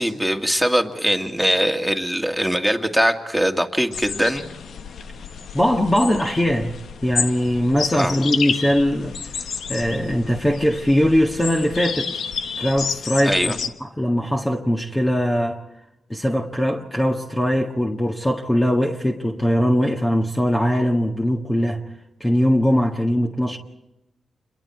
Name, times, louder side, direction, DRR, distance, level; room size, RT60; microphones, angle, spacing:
voice 1, 0.0-4.4 7.9-8.2 13.2-13.6, equal, ahead, 2.2 m, -21 dB
sound 1, 3.9-13.7, left 6 dB, 75° left, 1.2 m, -30 dB
voice 2, 5.5-6.7 7.0-9.2 9.7-12.1 12.6-13.5 13.8-15.6 16.1-21.8 22.2-23.6, equal, 15° left, 1.6 m, -21 dB
28.5 x 22.5 x 4.6 m
cardioid pair, 75°, 0 cm